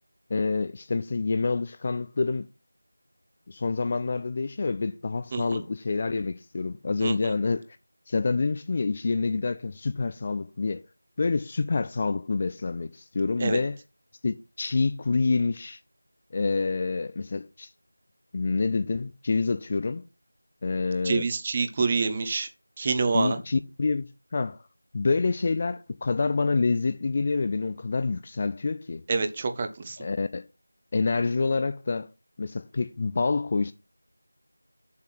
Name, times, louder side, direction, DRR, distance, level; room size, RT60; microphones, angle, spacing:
voice 1, 0.3-2.5 3.5-7.7 8.1-10.8 11.2-13.8 14.2-15.8 16.3-17.7 18.3-20.0 20.6-21.2 23.1-24.6 24.9-29.0 30.0-30.4 30.9-32.1 32.4-33.7, left 4 dB, 25° left, 0.4 m, -27 dB
voice 2, 5.3-5.6 7.0-7.2 13.4-13.6 21.0-22.5 22.8-23.4 29.1-30.0, right 4 dB, 20° right, 0.8 m, -27 dB
7.1 x 6.5 x 5.9 m
figure-of-eight pair, 170°, 0 cm